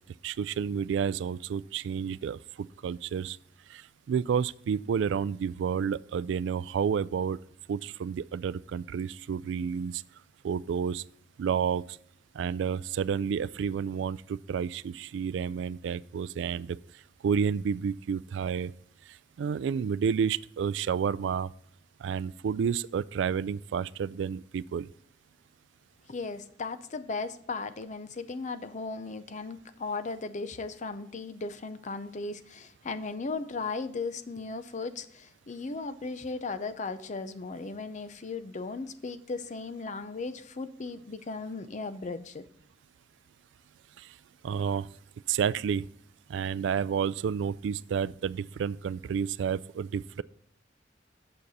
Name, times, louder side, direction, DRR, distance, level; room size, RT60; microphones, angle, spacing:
voice 1, 0.2-3.4 3.7-7.4 7.7-10.0 10.4-11.0 11.4-12.0 12.3-16.8 17.2-18.7 19.1-21.5 22.0-24.9 44.0-44.1 44.4-44.9 45.3-45.9 46.3-50.2, right 7 dB, 70° right, 19 dB, 0.3 m, -30 dB
voice 2, 26.1-42.5, left 3 dB, 40° left, 11 dB, 0.6 m, -36 dB
8.8 x 6.6 x 4.1 m, 0.68 s
head